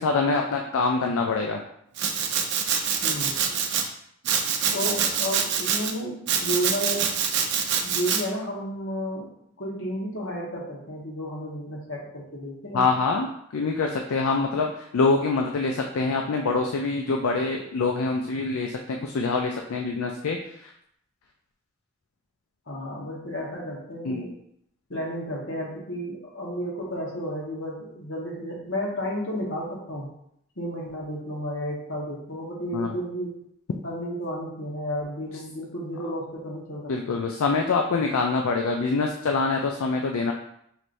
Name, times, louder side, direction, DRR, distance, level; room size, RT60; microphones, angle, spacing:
voice 1, 0.0-1.6 12.7-20.7 24.0-24.3 32.7-32.9 36.9-40.3, left 4 dB, 85° left, 2 dB, 0.4 m, -25 dB
Domestic sounds home sounds, 2.0-3.8 4.2-5.9 6.3-8.2, right 7 dB, 55° right, 0.5 m, -25 dB
voice 2, 3.0-3.5 4.7-7.1 7.8-9.3 9.6-12.9 22.7-24.3 24.9-30.1 30.6-33.4 33.8-37.1, equal, 65° left, -3 dB, 1.3 m, -32 dB
5.7 x 3.1 x 2.6 m, 0.73 s
head